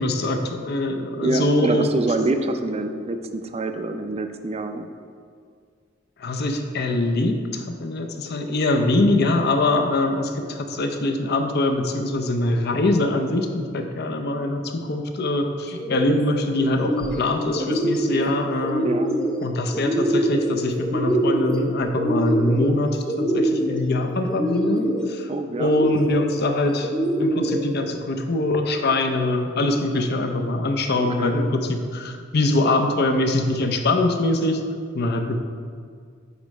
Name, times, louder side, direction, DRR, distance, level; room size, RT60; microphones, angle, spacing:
voice 1, 0.0-1.9 6.2-18.9 19.4-25.3 25.6-26.9 27.2-34.6 34.9-35.4, left 2 dB, 55° left, 5 dB, 0.6 m, -23 dB
voice 2, 1.2-4.9 18.8-19.1 25.3-25.7 31.0-31.3, right 2 dB, 30° right, 7 dB, 0.4 m, -26 dB
sound 1, 15.7-16.2 16.6-17.2 17.5-18.3 18.6-19.3 19.7-20.5 20.8-21.6 21.9-22.7 23.0-23.8 24.3-25.0 25.6-26.2 26.8-27.6, right 1 dB, 5° left, 0.7 m, -24 dB
8.2 x 3.2 x 5.2 m, 2.1 s
head